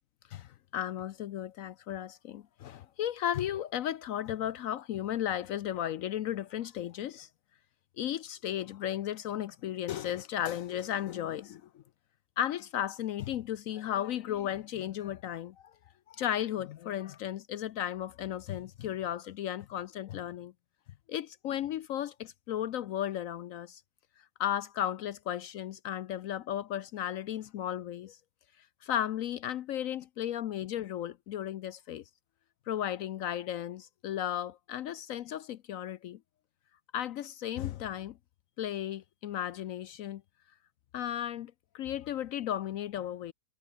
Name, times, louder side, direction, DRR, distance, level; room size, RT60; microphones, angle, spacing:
voice 1, 0.3-7.3 8.0-11.8 12.4-15.7 16.1-20.5 21.1-23.8 24.4-28.2 28.8-32.0 32.7-36.2 36.9-38.2 38.6-40.2 40.9-43.3, left 11 dB, 65° left, 0.9 m, -35 dB
omnidirectional pair, 1.7 m